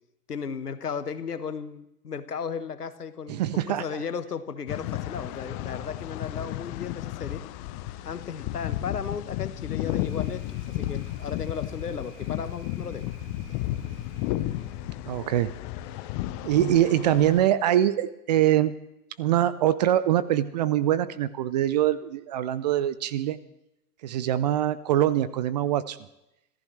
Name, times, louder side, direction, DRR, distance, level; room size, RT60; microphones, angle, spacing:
voice 1, 0.3-7.4 8.0-13.1 13.9-14.0, left 6 dB, 80° left, 12 dB, 1.4 m, -35 dB
voice 2, 3.3-4.0 15.1-15.5 16.4-18.7 19.2-23.4 24.0-26.0, right 12 dB, 30° right, 17 dB, 0.5 m, -23 dB
sound 1, 4.7-17.5, left 14 dB, 25° left, 0.7 m, -33 dB
Thunder, 9.9-15.1, right 2 dB, 10° right, 2.8 m, -53 dB
26.5 x 14.5 x 3.3 m, 0.86 s
figure-of-eight pair, 115°, 46 cm